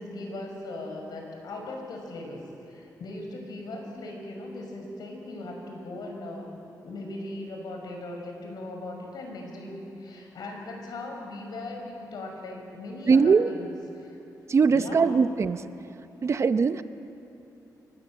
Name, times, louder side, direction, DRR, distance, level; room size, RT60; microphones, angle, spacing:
voice 1, 0.0-6.5 6.8-14.2 14.7-15.2, left 2 dB, 90° left, 2 dB, 5.8 m, -39 dB
voice 2, 13.1-13.5 14.5-15.7 16.2-16.8, right 5 dB, 45° right, 11 dB, 0.8 m, -21 dB
28.0 x 23.5 x 7.6 m, 2.9 s
wide cardioid pair, 140°, 7 cm